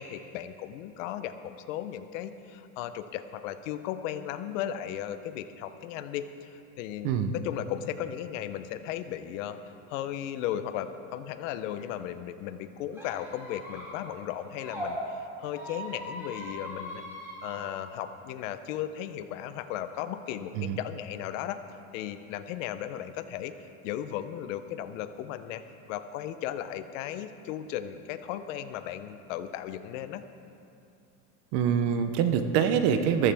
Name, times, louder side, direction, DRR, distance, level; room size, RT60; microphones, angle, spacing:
voice 1, 0.0-9.6 9.9-17.0 17.4-21.6 21.9-23.5 23.8-25.6 25.9-30.2, left 11 dB, 55° left, 11 dB, 0.7 m, -36 dB
voice 2, 7.0-7.3 20.6-20.8 31.5-33.3, right 8 dB, 40° right, 9 dB, 0.7 m, -25 dB
Squeak, 12.9-14.9 15.5-17.6, equal, 5° right, 2.9 m, -41 dB
14.0 x 14.0 x 3.4 m, 2.6 s
supercardioid pair, 170°, 46 cm